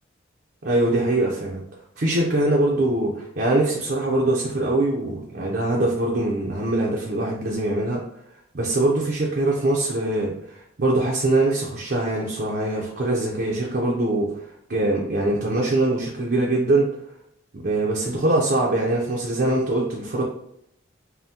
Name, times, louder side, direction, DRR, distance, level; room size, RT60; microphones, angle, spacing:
voice 1, 0.6-1.6 2.0-8.0 8.5-14.3 14.7-16.9 17.5-20.2, right 2 dB, 50° right, -3 dB, 0.6 m, -23 dB
5.5 x 2.2 x 2.8 m, 0.76 s
head